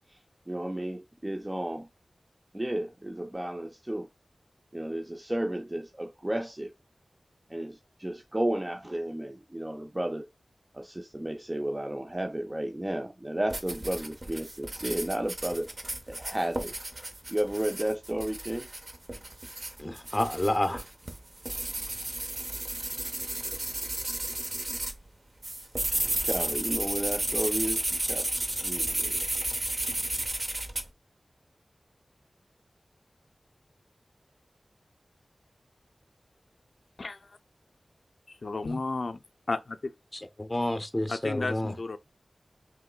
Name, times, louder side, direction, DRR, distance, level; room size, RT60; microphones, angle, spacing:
voice 1, 0.5-1.9 2.5-4.1 4.7-6.7 7.5-10.3 10.7-15.7 16.1-16.7 17.3-18.7 26.1-28.3 28.6-29.2, right 1 dB, 20° right, 0.4 m, -33 dB
sound 1, 13.5-25.0 25.4-30.8, right 1 dB, 40° right, 0.8 m, -33 dB
voice 2, 19.8-20.8 40.4-41.7, left 1 dB, 20° left, 0.6 m, -29 dB
voice 3, 37.0-37.4 38.4-39.2 39.5-39.9 41.1-42.0, left 3 dB, 65° left, 0.4 m, -33 dB
5.6 x 3.0 x 2.2 m
wide cardioid pair, 70°, 0 cm